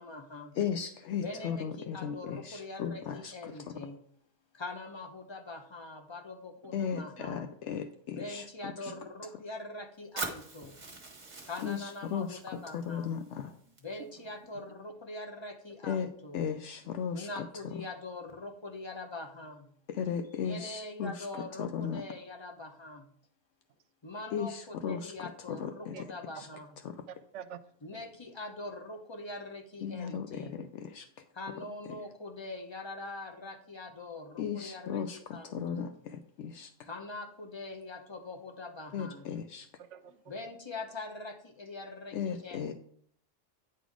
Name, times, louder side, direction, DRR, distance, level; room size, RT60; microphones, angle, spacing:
voice 1, 0.0-0.5 1.2-4.0 4.5-7.5 8.1-10.8 11.4-13.2 13.8-16.4 17.1-19.7 20.4-23.1 24.0-26.8 27.8-30.6 31.3-35.9 36.8-39.3 40.3-42.7, left 2 dB, 25° left, 4 dB, 0.7 m, -43 dB
voice 2, 0.6-3.3 6.7-8.4 11.6-11.8 12.1-12.4 12.7-13.5 15.9-16.1 16.3-17.3 19.9-21.1 21.6-22.0 24.3-25.1 25.5-25.9 29.8-31.1 34.4-35.2 35.5-35.9 36.4-36.7 38.9-39.7 42.1-42.7, left 7 dB, 75° left, 7 dB, 0.9 m, -35 dB
voice 3, 6.9-7.3 8.9-9.0 25.9-26.1 26.4-26.5 27.1-27.6 39.8-40.2, right 9 dB, 75° right, 12 dB, 0.9 m, -46 dB
Fire, 10.2-14.2, right 3 dB, 35° right, 1.2 m, -44 dB
9.3 x 4.0 x 4.7 m, 0.63 s
omnidirectional pair, 1.3 m